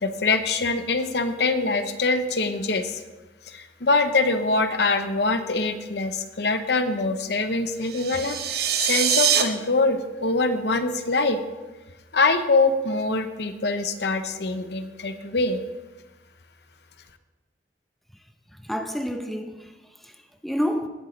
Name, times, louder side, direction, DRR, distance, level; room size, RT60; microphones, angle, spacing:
voice 1, 0.0-3.0 3.5-11.4 12.1-15.6, left 3 dB, 65° left, 0.8 m, -24 dB
sound 1, 7.8-9.4, right 9 dB, 60° right, 0.9 m, -23 dB
voice 2, 18.5-20.9, equal, ahead, 0.6 m, -30 dB
18.0 x 8.0 x 3.2 m
head